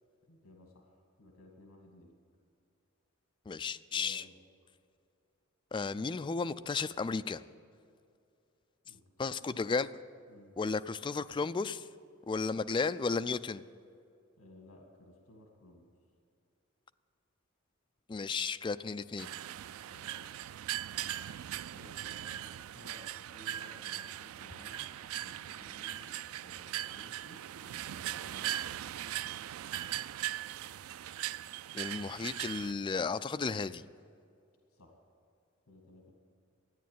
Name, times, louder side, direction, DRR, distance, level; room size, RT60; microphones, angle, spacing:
voice 1, 0.2-0.9 1.2-2.1 3.9-4.4 8.8-9.3 10.3-10.6 14.4-15.9 19.9-20.2 21.4-24.9 25.2-28.6 34.7-35.0 35.7-36.1, left 1 dB, 70° left, 1 dB, 1.9 m, -57 dB
voice 2, 3.5-4.2 5.7-7.4 9.2-9.9 10.6-11.9 12.3-13.6 18.1-19.3 31.7-33.8, left 4 dB, 20° left, 12 dB, 0.3 m, -34 dB
sound 1, 19.2-32.7, right 12 dB, 80° right, 0.3 m, -40 dB
13.5 x 9.3 x 9.3 m, 2.5 s
head